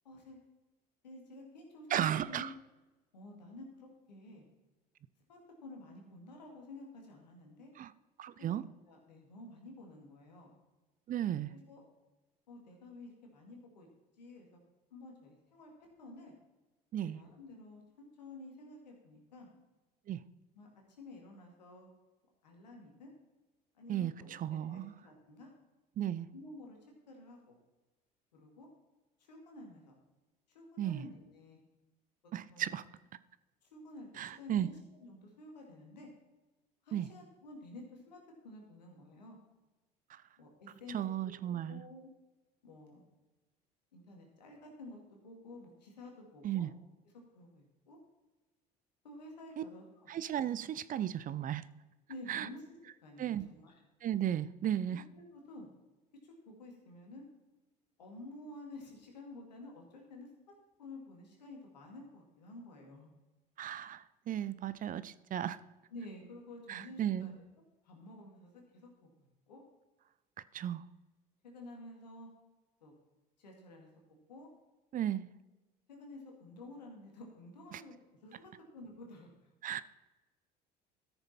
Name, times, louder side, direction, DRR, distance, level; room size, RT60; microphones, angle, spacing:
voice 1, 0.0-0.4 1.0-2.0 2.3-2.5 3.1-4.4 5.3-7.7 8.4-8.6 8.9-10.5 11.5-11.8 12.5-13.9 14.2-14.5 14.9-15.7 16.0-16.3 17.0-19.5 20.5-21.9 22.4-23.1 23.7-25.5 26.3-26.8 27.1-27.6 28.3-28.7 29.2-29.9 30.5-31.6 32.5-32.8 33.6-36.1 36.8-38.2 38.4-39.4 40.4-41.0 41.4-42.1 42.6-43.0 43.9-46.7 47.3-48.0 49.0-50.1 52.1-53.8 54.7-55.7 56.2-57.2 58.0-60.3 60.8-63.1 65.9-67.3 67.8-69.6 71.4-72.3 72.8-72.9 73.4-74.5 75.9-77.9 78.2-79.3, left 2 dB, 90° left, 1 dB, 2.4 m, -51 dB
voice 2, 1.9-2.5 7.8-7.9 8.2-8.6 11.1-11.5 16.9-17.2 20.1-20.2 23.9-25.0 26.0-26.3 30.8-31.0 32.3-32.8 34.2-34.7 36.9-37.1 40.9-41.8 46.4-46.7 49.6-49.7 50.1-51.6 52.3-52.5 53.2-53.4 54.0-55.0 63.6-65.6 66.7-67.3 70.5-70.8 74.9-75.3 77.7-77.8 79.6-79.8, right 11 dB, 40° right, 17 dB, 0.5 m, -35 dB
13.5 x 6.8 x 4.3 m, 1.1 s
hypercardioid pair, 65°, 21 cm